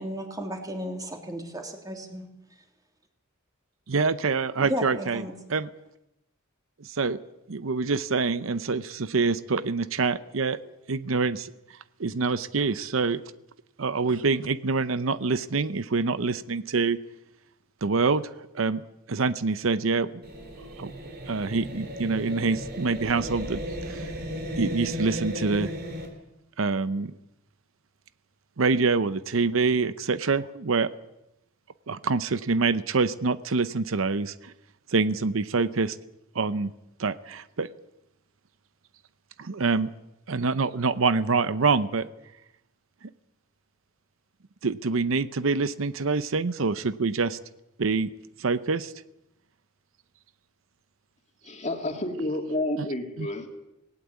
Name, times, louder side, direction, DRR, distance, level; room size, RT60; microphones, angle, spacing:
voice 1, 0.0-2.2 4.6-5.3, equal, 20° right, 3.2 m, -34 dB
voice 2, 3.9-5.2 5.5-5.7 6.8-7.2 7.5-11.5 12.0-13.2 13.8-17.0 17.8-18.2 18.5-18.8 19.1-20.2 20.8-20.9 21.3-23.6 23.9-24.1 24.6-25.7 26.6-27.1 28.6-30.9 31.9-34.5 34.9-36.0 36.3-36.7 37.0-37.7 39.4-39.9 40.3-42.1 44.6-47.4 47.8-48.1 48.4-48.9 53.2-53.3, right 4 dB, 75° right, 0.7 m, -26 dB
sound 1, 20.2-26.1, equal, 50° right, 3.8 m, -35 dB
voice 3, 51.4-53.5, left 1 dB, 35° left, 2.8 m, -30 dB
18.5 x 18.5 x 8.4 m
head